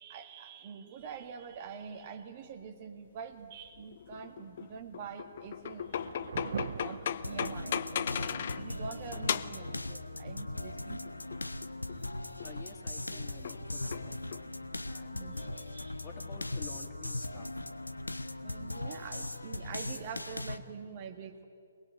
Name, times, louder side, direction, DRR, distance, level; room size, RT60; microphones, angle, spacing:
voice 1, 0.0-6.0 6.4-11.4 11.9-12.5 15.1-16.0 18.4-21.4, right 6 dB, 35° right, 7 dB, 1.8 m, -46 dB
sound 1, 3.7-8.7 9.1-9.7 10.9-12.1 12.4-12.6 13.4-14.5, left 8 dB, 45° left, 0.6 m, -37 dB
Thunder / Rain, 5.4-19.9, right 6 dB, 50° right, 0.8 m, -48 dB
sound 2, 7.2-20.6, left 2 dB, 80° left, 1.0 m, -39 dB
voice 2, 12.4-14.4 14.9-17.5, left 6 dB, 25° left, 5 dB, 2.5 m, -51 dB
23.0 x 20.0 x 9.9 m, 2.5 s
figure-of-eight pair, 130°, 0 cm